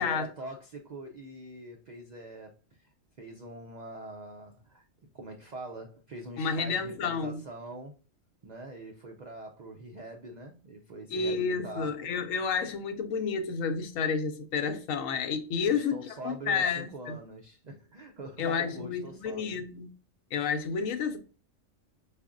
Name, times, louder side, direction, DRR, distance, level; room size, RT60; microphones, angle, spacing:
voice 1, 0.0-4.9 5.1-8.0 8.4-11.9 15.7-19.6, right 2 dB, 75° right, 0.3 m, -43 dB
voice 2, 6.4-7.4 11.1-16.0 16.2-17.2 18.4-19.9 20.3-21.2, left 5 dB, 80° left, 1.0 m, -30 dB
4.8 x 2.5 x 2.4 m
omnidirectional pair, 1.4 m